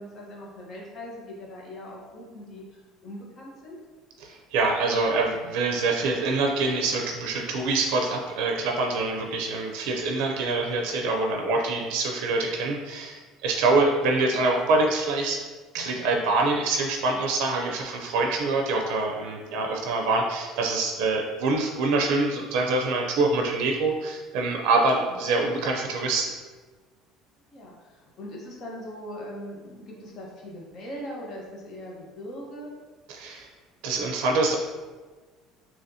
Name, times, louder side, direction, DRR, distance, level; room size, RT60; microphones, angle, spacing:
voice 1, 0.0-3.8 19.4-19.6 27.5-32.7, equal, 40° left, -2 dB, 0.9 m, -40 dB
voice 2, 4.2-15.4 15.7-26.3 33.1-33.5 33.8-34.6, right 3 dB, 80° right, 1 dB, 0.4 m, -25 dB
4.1 x 2.9 x 2.7 m, 1.4 s
cardioid pair, 145°, 0 cm